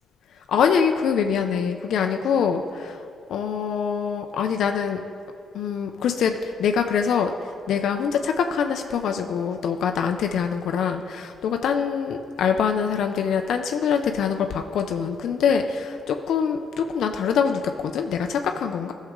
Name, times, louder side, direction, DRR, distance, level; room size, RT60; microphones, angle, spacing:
voice 1, 0.5-3.0 3.3-5.0 5.5-7.3 7.7-18.9, left 7 dB, 80° left, 5 dB, 0.5 m, -24 dB
14.5 x 6.4 x 3.7 m, 2.5 s
cardioid pair, 115°, 0 cm